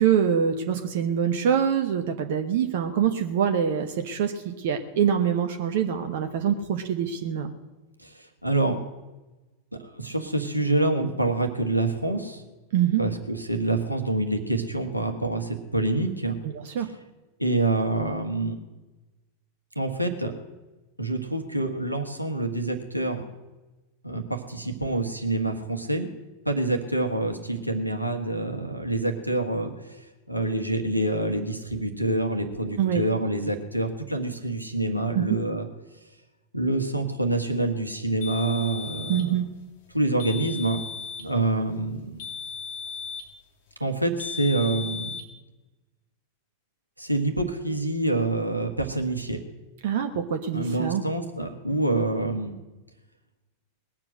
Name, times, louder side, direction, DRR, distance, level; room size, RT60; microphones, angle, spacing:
voice 1, 0.0-7.5 12.7-13.0 16.4-16.9 32.8-33.0 35.1-35.4 39.1-39.5 49.8-51.0, right 8 dB, 55° right, 6 dB, 1.1 m, -25 dB
voice 2, 8.0-8.8 9.7-12.4 13.0-16.4 16.8-16.9 17.4-18.6 19.7-20.3 21.0-23.2 24.0-26.1 26.4-35.7 36.5-39.4 39.9-40.8 41.2-42.2 43.8-45.1 47.0-49.4 50.5-52.5, right 2 dB, 90° right, 4 dB, 1.6 m, -27 dB
sound 1, 38.2-39.3 40.2-41.3 42.2-43.3 44.2-45.3, left 6 dB, 50° left, 2.3 m, -36 dB
20.0 x 7.5 x 7.7 m, 1.1 s
figure-of-eight pair, 90°, 0 cm